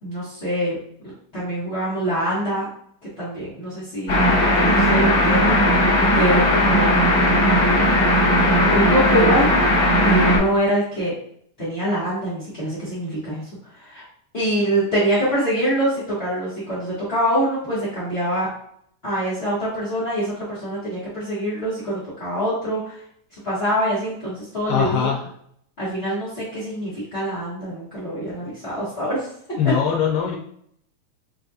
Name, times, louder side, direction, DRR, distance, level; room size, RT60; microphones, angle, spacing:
voice 1, 0.0-0.8 1.3-2.7 3.2-4.2 4.5-5.9 6.1-6.9 8.7-9.5 10.0-11.1 11.6-13.4 13.8-14.0 14.3-18.5 19.0-23.0 23.4-25.1 25.8-29.3, equal, 70° left, -11 dB, 0.5 m, -24 dB
sound 1, 4.1-10.4, equal, 45° left, 1.5 m, -17 dB
voice 2, 24.7-25.2 29.6-30.4, left 8 dB, 90° left, 0 dB, 2.2 m, -21 dB
6.0 x 2.4 x 2.7 m, 0.66 s
omnidirectional pair, 3.7 m